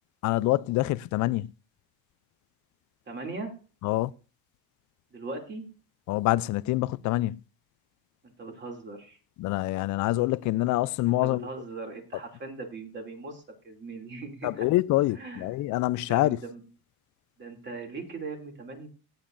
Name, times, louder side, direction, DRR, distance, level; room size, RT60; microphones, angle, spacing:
voice 1, 0.2-1.5 3.8-4.1 6.1-7.4 9.4-11.5 14.4-16.4, left 17 dB, 50° left, 0.4 m, -26 dB
voice 2, 3.1-3.5 5.1-5.7 8.2-9.2 11.1-14.7 15.1-15.5 16.1-16.7 17.4-18.9, right 3 dB, 25° right, 2.7 m, -39 dB
16.0 x 8.9 x 2.6 m
cardioid pair, 130°, 40 cm